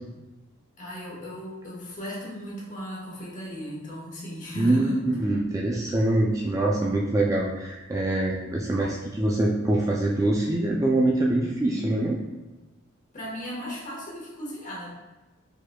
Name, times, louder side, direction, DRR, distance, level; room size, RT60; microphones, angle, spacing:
voice 1, 0.8-5.1 13.1-14.9, equal, 40° left, -5 dB, 1.4 m, -36 dB
voice 2, 4.6-12.2, right 1 dB, 15° right, -2 dB, 0.4 m, -24 dB
4.9 x 4.1 x 2.3 m, 1.1 s
head